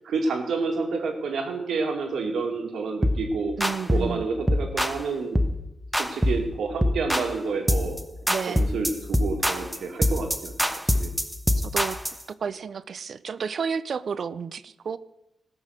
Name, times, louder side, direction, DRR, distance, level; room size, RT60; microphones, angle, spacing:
voice 1, 0.1-3.5 3.9-5.4 6.0-8.0 8.5-10.5 11.0-11.1, right 4 dB, 85° right, 3 dB, 2.4 m, -29 dB
sound 1, 3.0-3.3 3.6-4.1 4.5-5.0 5.4-5.6 5.9-6.5 6.8-7.3 7.7-8.0 8.3-12.2, equal, 5° right, 0.8 m, -24 dB
voice 2, 3.6-4.3 8.3-8.7 11.6-12.0 12.4-15.0, right 6 dB, 55° right, 16 dB, 0.6 m, -31 dB
19.0 x 6.4 x 6.6 m, 0.92 s
wide cardioid pair, 135°, 0 cm